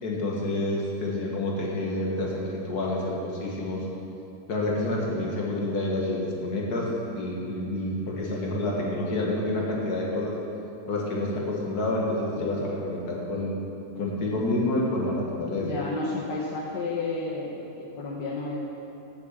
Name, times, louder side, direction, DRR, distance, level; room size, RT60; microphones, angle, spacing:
voice 1, 0.0-3.9 4.5-6.9 7.1-10.3 10.9-13.6 14.0-15.6, left 1 dB, 70° left, -3 dB, 2.3 m, -28 dB
voice 2, 15.6-18.6, left 3 dB, 85° left, -3 dB, 1.7 m, -32 dB
9.4 x 7.3 x 7.6 m, 3.0 s
omnidirectional pair, 1.8 m